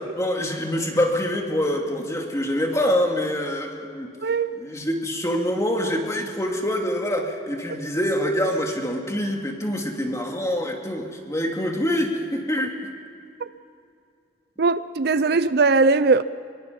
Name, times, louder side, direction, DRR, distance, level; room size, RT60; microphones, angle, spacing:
voice 1, 0.2-4.1 4.5-12.8 15.3-15.4, equal, 15° left, 2.7 m, -25 dB
voice 2, 4.2-4.6 14.6-16.2, right 4 dB, 60° right, 0.6 m, -19 dB
24.5 x 22.5 x 5.5 m
head